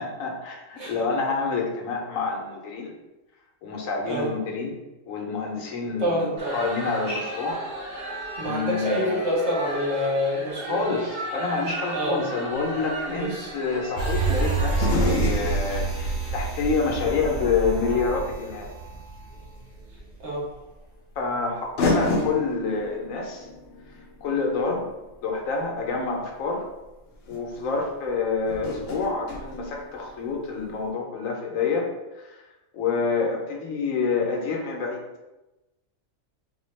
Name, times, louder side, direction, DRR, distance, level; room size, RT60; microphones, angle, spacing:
voice 1, 0.0-2.9 3.6-4.7 5.1-7.6 8.4-9.3 10.7-18.7 21.2-23.5 24.2-24.8 25.2-26.7 27.3-31.9 32.1-32.4 32.7-35.0, left 4 dB, 85° left, 1 dB, 1.1 m, -27 dB
voice 2, 6.0-6.5 8.4-10.8 11.9-12.2 13.1-13.5 20.2-20.4, equal, 60° right, -5 dB, 1.3 m, -27 dB
sound 1, 6.4-14.6, right 1 dB, 80° right, 1.7 m, -35 dB
sound 2, 12.6-12.7 14.7-17.7 18.2-18.3 19.8-19.9 21.1-21.2 21.8-25.9 26.8-26.9 27.2-27.4 28.5-30.4 30.6-30.7, left 2 dB, 60° left, 0.8 m, -31 dB
sound 3, 14.0-19.6 20.0-20.1, right 3 dB, 40° right, 0.7 m, -27 dB
4.0 x 2.3 x 3.1 m, 1.0 s
omnidirectional pair, 1.4 m